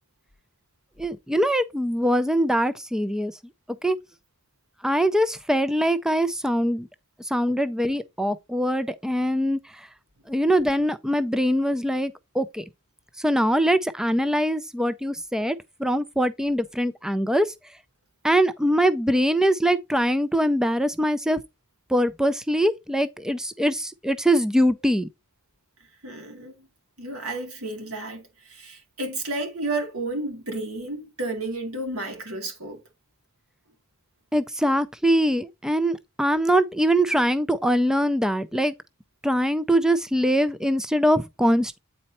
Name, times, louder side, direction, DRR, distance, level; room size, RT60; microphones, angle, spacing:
voice 1, 1.0-3.3 3.8-4.0 4.8-6.9 7.2-9.6 10.3-12.6 13.2-17.5 18.2-21.4 21.9-25.1 34.3-38.7 39.2-41.8, equal, 5° right, 0.4 m, -23 dB
voice 2, 26.0-26.7 27.0-32.8, right 2 dB, 85° right, 2.7 m, -32 dB
8.9 x 4.2 x 4.2 m
head